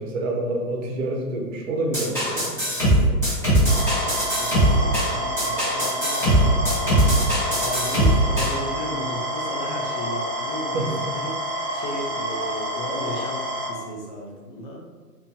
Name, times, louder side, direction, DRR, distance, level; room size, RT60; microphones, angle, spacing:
voice 1, 0.0-2.6 10.7-11.0, right 2 dB, 50° right, 1 dB, 0.8 m, -27 dB
sound 1, 1.9-8.6, right 1 dB, 5° left, 1.3 m, -20 dB
sound 2, 3.7-13.7, equal, 15° right, 0.6 m, -29 dB
voice 2, 4.3-7.1 7.5-13.4 13.7-14.8, left 1 dB, 35° left, -2 dB, 0.4 m, -35 dB
2.9 x 2.5 x 3.6 m, 1.4 s
hypercardioid pair, 120°, 49 cm